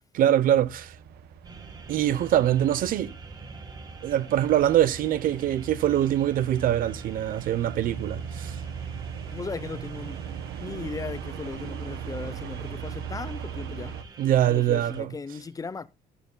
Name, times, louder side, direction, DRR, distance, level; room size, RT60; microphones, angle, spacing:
voice 1, 0.1-0.9 1.9-3.1 4.0-8.6 14.2-15.1, right 11 dB, 60° right, 0.8 m, -23 dB
sound 1, 0.6-14.0, right 7 dB, 85° right, 1.2 m, -39 dB
sound 2, 1.4-15.0, right 4 dB, 25° right, 1.7 m, -46 dB
voice 2, 9.3-10.2 10.6-14.0 14.5-15.9, left 4 dB, 20° left, 0.6 m, -37 dB
14.0 x 12.0 x 2.2 m
cardioid pair, 135°, 16 cm